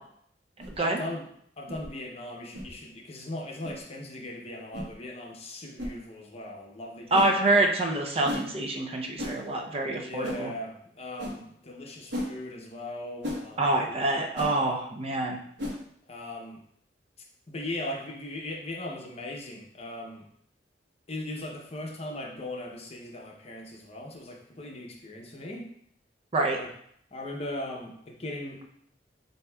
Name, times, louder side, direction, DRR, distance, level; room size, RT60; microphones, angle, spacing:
sound 1, 0.6-0.8 1.7-1.9 2.5-2.7 3.6-3.8 4.7-4.9 5.8-5.9 7.1-7.3 8.2-8.5 9.2-9.4 10.2-10.4 11.2-11.4 12.1-12.3 13.2-13.4 14.3-14.5 15.6-15.8, left 1 dB, 80° right, 1.2 m, -34 dB
voice 1, 0.8-1.3 1.6-7.3 9.9-13.9 14.6-14.8 16.1-16.6 17.5-20.3 21.1-25.7 26.6-26.7 27.1-28.6, left 1 dB, 35° left, 1 dB, 0.7 m, -39 dB
voice 2, 7.1-10.5 13.6-15.4 26.3-26.6, right 2 dB, 35° right, 2 dB, 0.5 m, -26 dB
7.4 x 2.7 x 2.3 m, 0.68 s
head